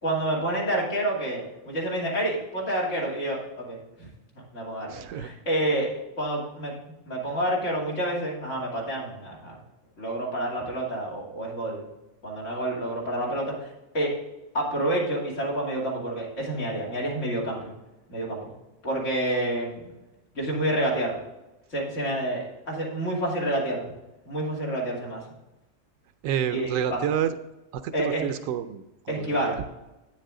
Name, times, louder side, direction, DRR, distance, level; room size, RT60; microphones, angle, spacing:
voice 1, 0.0-4.1 4.5-5.9 6.2-6.7 7.1-9.6 10.0-11.8 12.2-13.7 13.9-14.1 14.5-17.7 18.1-18.5 18.8-19.9 20.3-21.2 21.7-23.9 24.3-25.2 26.5-27.0 27.9-28.2 29.1-29.6, right 1 dB, 70° left, -4 dB, 3.1 m, -28 dB
voice 2, 4.9-5.3 26.2-27.4 27.8-29.4, right 9 dB, 85° right, 10 dB, 1.0 m, -29 dB
9.3 x 7.5 x 3.7 m, 0.98 s
omnidirectional pair, 1.3 m